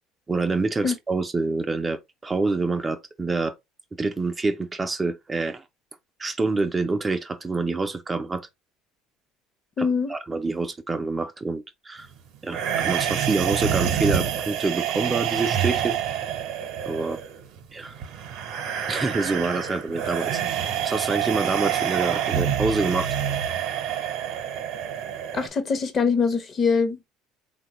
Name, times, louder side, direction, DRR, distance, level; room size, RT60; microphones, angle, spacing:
voice 1, 0.3-3.6 3.9-5.6 6.2-8.5 9.8-12.1 12.4-16.3 16.9-17.2 17.7-17.9 18.9-23.2, right 3 dB, 20° right, 0.4 m, -27 dB
voice 2, 9.8-10.1 25.3-27.1, left 5 dB, 35° left, 0.7 m, -23 dB
sound 1, 12.5-25.5, right 9 dB, 65° right, 0.7 m, -27 dB
3.3 x 2.2 x 2.9 m
supercardioid pair, 105°, 0 cm